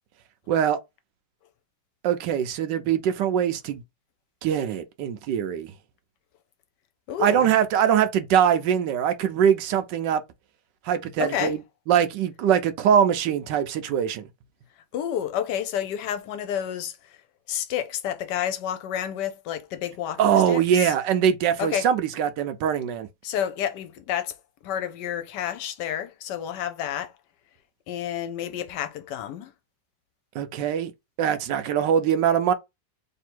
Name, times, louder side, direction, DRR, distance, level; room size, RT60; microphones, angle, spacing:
voice 1, 0.5-0.8 2.0-3.8 4.4-5.7 7.2-10.2 10.8-11.6 11.9-14.3 20.2-23.1 30.3-30.9 31.2-32.5, right 9 dB, 80° right, 1.3 m, -22 dB
voice 2, 7.1-7.5 11.2-11.6 14.9-17.0 17.5-20.9 21.6-21.9 23.2-24.4 24.6-27.1 27.9-29.5, left 10 dB, 75° left, 1.1 m, -30 dB
3.3 x 2.7 x 4.4 m
omnidirectional pair, 2.0 m